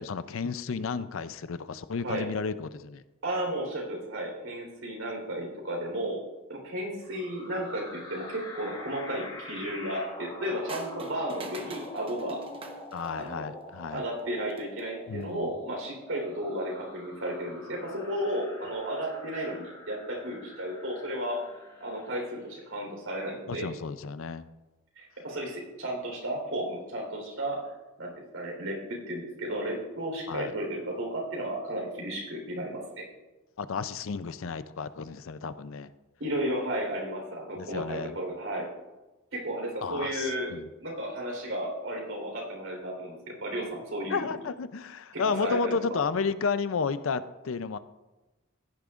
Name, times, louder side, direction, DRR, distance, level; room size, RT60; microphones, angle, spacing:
voice 1, 0.0-3.0 12.9-14.0 15.1-15.5 23.5-24.4 30.3-30.5 33.6-35.9 37.6-38.2 39.8-40.7 44.1-47.8, left 5 dB, 75° left, 14 dB, 0.5 m, -32 dB
voice 2, 3.2-6.2 6.5-12.4 13.2-13.5 13.9-21.4 21.8-23.7 25.0-27.7 28.0-33.1 36.2-38.7 39.3-40.5 40.8-44.3 45.1-45.8, right 1 dB, 80° right, 0 dB, 3.9 m, -33 dB
sound 1, 7.0-22.7, left 2 dB, 25° left, 3.0 m, -46 dB
sound 2, 10.7-13.4 14.4-14.8, right 2 dB, 25° right, 1.0 m, -43 dB
15.5 x 10.5 x 2.5 m, 1.1 s
head